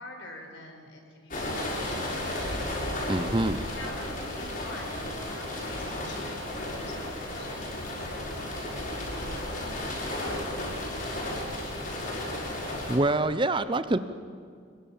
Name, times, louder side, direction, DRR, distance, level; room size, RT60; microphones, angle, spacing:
voice 1, 0.0-2.8 3.7-4.9 5.3-12.0, left 2 dB, 65° left, 3 dB, 5.0 m, -47 dB
sound 1, 1.3-13.0, left 1 dB, 45° left, 6.6 m, -33 dB
voice 2, 3.1-3.6 12.9-14.0, right 2 dB, 25° right, 12 dB, 0.7 m, -25 dB
27.0 x 22.5 x 7.3 m, 2.2 s
head